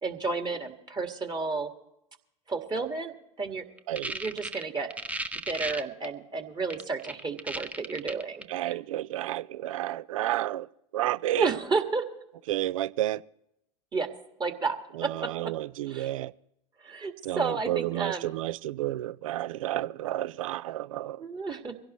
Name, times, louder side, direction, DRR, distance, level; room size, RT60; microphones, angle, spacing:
voice 1, 0.0-1.7 2.5-3.6 4.1-4.9 5.5-8.8 11.4-12.0 13.9-14.1 14.4-15.5 15.9-16.1 16.8-18.3 21.2-21.7, right 4 dB, 25° right, 1.9 m, -32 dB
sound 1, 3.8-6.1 6.7-8.4, right 2 dB, 10° right, 0.8 m, -35 dB
voice 2, 8.5-10.7 10.9-11.5 12.5-13.2 15.0-16.3 17.2-21.2, right 14 dB, 70° right, 0.5 m, -31 dB
23.0 x 16.5 x 3.1 m
hypercardioid pair, 90°, 18 cm